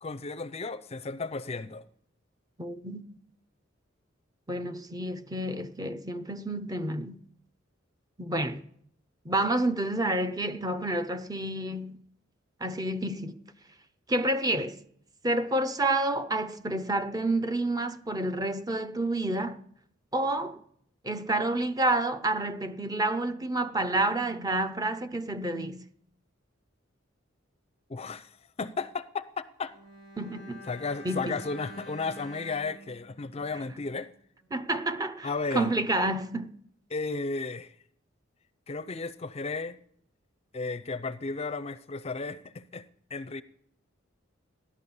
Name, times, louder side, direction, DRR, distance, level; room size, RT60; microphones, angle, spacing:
voice 1, 0.0-1.9 27.9-29.7 30.7-34.1 35.2-35.7 36.9-37.7 38.7-39.8 40.5-42.8 43.1-43.4, left 4 dB, 30° left, 0.5 m, -34 dB
voice 2, 2.6-3.1 4.5-7.2 8.2-8.6 9.2-12.0 12.6-13.4 14.1-14.8 15.2-19.6 20.1-20.6 21.0-25.8 30.2-30.6 31.0-31.4 34.5-36.5, right 1 dB, 20° right, 0.7 m, -29 dB
Bowed string instrument, 29.7-34.1 34.4-34.5, left 1 dB, 70° right, 3.5 m, -48 dB
16.5 x 11.5 x 7.0 m
head